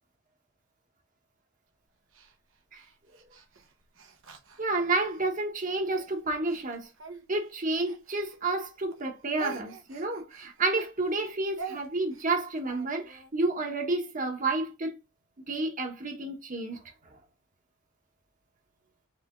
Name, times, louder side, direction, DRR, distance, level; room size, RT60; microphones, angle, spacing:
Speech, 2.1-5.2 5.8-8.6 8.9-13.3, right 4 dB, 70° right, 1.1 m, -46 dB
voice 1, 4.6-6.9 7.3-14.9 15.5-16.8 17.1-17.2, right 2 dB, 40° right, 1.3 m, -30 dB
4.9 x 3.5 x 2.5 m
head